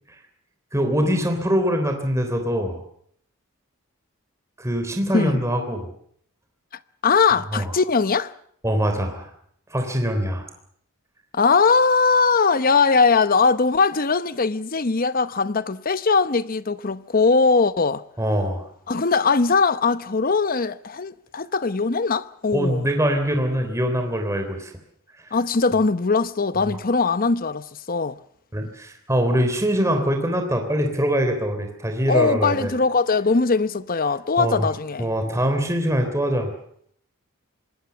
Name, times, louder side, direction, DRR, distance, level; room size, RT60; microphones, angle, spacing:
voice 1, 0.7-2.8 4.6-5.9 7.5-7.7 8.6-9.3 9.7-10.5 18.2-18.6 22.5-24.7 25.3-25.4 28.5-32.7 34.4-34.7 35.0-36.5, equal, 15° right, 3.6 m, -23 dB
voice 2, 7.0-8.3 11.3-18.0 18.9-22.9 25.3-28.2 32.1-35.1, left 4 dB, 40° left, 0.8 m, -20 dB
25.0 x 20.0 x 7.1 m
head